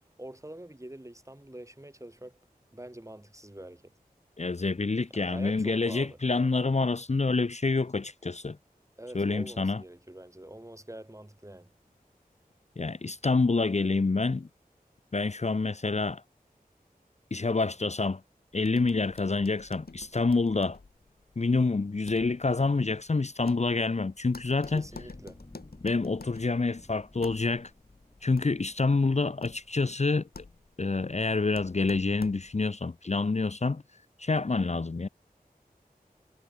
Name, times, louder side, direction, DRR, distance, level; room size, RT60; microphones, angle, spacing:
voice 1, 0.2-2.4 2.7-4.0 5.1-6.2 9.0-11.7 24.7-25.4, right 1 dB, 20° right, 3.3 m, -45 dB
voice 2, 4.4-8.6 9.1-9.8 12.8-14.5 15.1-16.2 17.3-18.2 18.5-20.8 21.4-24.8 25.8-27.7 28.2-30.3 30.8-33.8 34.2-35.1, left 3 dB, 45° left, 0.7 m, -27 dB
sound 1, 18.6-32.7, left 3 dB, 85° left, 2.4 m, -50 dB
sound 2, 24.7-29.2 29.7-29.8, left 1 dB, 30° left, 4.9 m, -55 dB
wide cardioid pair, 55°, 16 cm